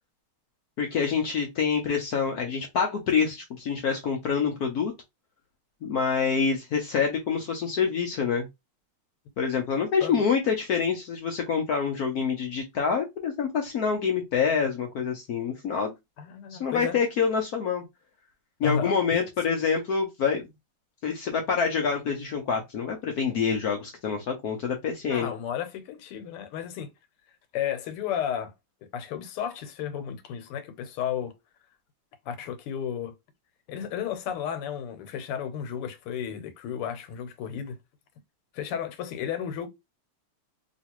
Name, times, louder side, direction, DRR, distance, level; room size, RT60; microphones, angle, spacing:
voice 1, 0.8-4.9 5.8-8.5 9.4-15.9 16.5-17.8 18.6-20.4 21.0-25.3, left 6 dB, 70° left, 0.9 m, -26 dB
voice 2, 16.2-17.0 18.6-19.2 25.1-26.9 27.5-28.5 28.9-31.3 32.3-33.1 33.7-37.8 38.5-39.7, left 8 dB, 85° left, 1.7 m, -33 dB
3.1 x 3.0 x 2.9 m
omnidirectional pair, 2.4 m